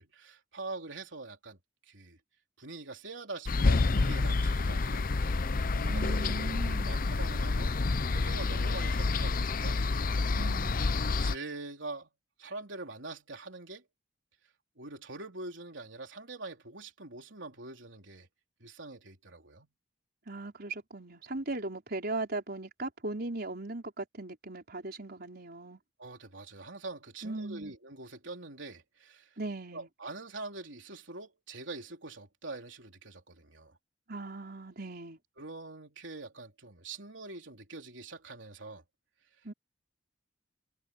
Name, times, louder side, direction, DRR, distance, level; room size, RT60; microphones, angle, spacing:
voice 1, 0.0-2.2 2.6-5.2 5.7-6.1 6.7-7.7 8.1-9.8 11.2-12.1 12.4-13.9 14.8-18.3 18.6-19.7 26.0-29.4 29.7-33.8 35.4-38.8, right 3 dB, 85° right, 3.5 m, -44 dB
sound 1, 3.5-11.4, left 3 dB, 50° left, 0.7 m, -28 dB
voice 2, 5.9-6.9 10.3-10.9 20.3-25.8 27.2-27.7 29.4-29.9 34.1-35.2 39.4-39.5, right 2 dB, 60° right, 4.7 m, -38 dB
head